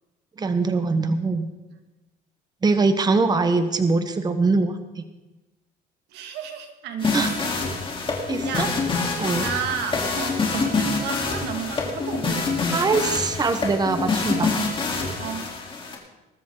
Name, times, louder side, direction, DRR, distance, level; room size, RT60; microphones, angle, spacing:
voice 1, 0.4-1.5 2.6-5.0 7.1-7.3 8.3-8.7 9.2-9.5 12.7-14.5, right 3 dB, 25° right, 8 dB, 1.1 m, -22 dB
voice 2, 6.1-7.5 8.4-8.7 9.4-12.7 15.2-15.5, right 7 dB, 85° right, 5 dB, 2.0 m, -32 dB
sound 1, 7.0-15.9, left 4 dB, 30° left, 3.2 m, -26 dB
21.0 x 12.5 x 3.8 m, 1.1 s
cardioid pair, 110°, 17 cm